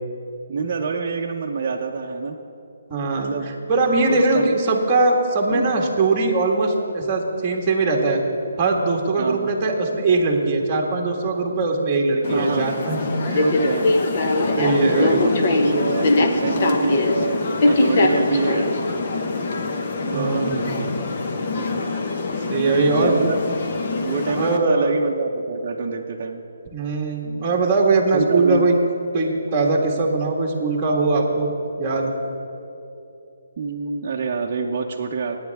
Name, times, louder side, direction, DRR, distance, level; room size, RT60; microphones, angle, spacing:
voice 1, 0.5-2.4 3.0-3.5 4.1-4.6 5.5-5.7 9.2-9.5 12.3-12.7 13.3-13.9 14.8-18.7 20.0-21.0 21.6-21.8 22.3-23.4 24.0-26.4 28.1-28.6 33.6-35.4, right 5 dB, 35° right, -1 dB, 0.7 m, -26 dB
voice 2, 2.9-3.3 3.7-8.2 8.6-13.0 13.3-13.4 14.6-15.3 20.1-20.6 22.5-23.2 24.4-25.0 26.7-28.8 29.1-31.5 31.8-32.1, right 3 dB, 15° right, -1 dB, 1.6 m, -21 dB
sound 1, 12.2-24.6, left 2 dB, 40° left, 1.1 m, -22 dB
25.5 x 9.4 x 3.5 m, 2.8 s
hypercardioid pair, 165°, 0 cm